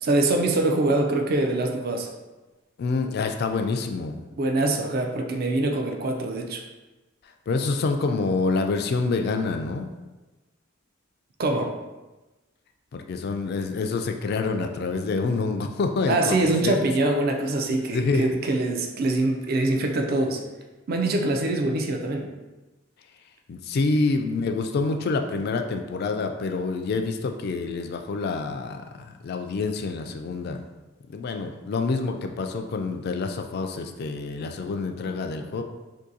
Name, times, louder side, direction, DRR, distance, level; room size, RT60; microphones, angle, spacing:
voice 1, 0.0-2.1 4.4-6.6 11.4-11.7 16.1-20.4 20.9-22.3, right 2 dB, 50° right, 3 dB, 0.4 m, -24 dB
voice 2, 2.8-4.2 7.5-9.9 12.9-16.8 17.7-18.4 23.5-30.6 31.1-35.6, left 3 dB, 50° left, 5 dB, 0.3 m, -27 dB
2.7 x 2.6 x 3.8 m, 1.1 s
head